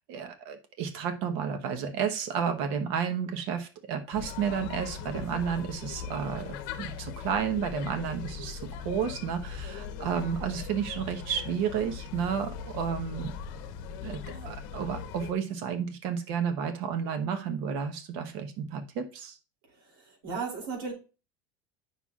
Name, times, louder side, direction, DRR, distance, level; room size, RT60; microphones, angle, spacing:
voice 1, 0.0-13.3 14.0-19.4, right 7 dB, 55° right, 7 dB, 1.1 m, -32 dB
sound 1, 4.1-15.3, left 7 dB, 65° left, 0.8 m, -39 dB
voice 2, 19.7-20.9, right 5 dB, 75° right, -1 dB, 3.1 m, -36 dB
8.9 x 5.9 x 2.4 m, 0.33 s
cardioid pair, 170°, 12 cm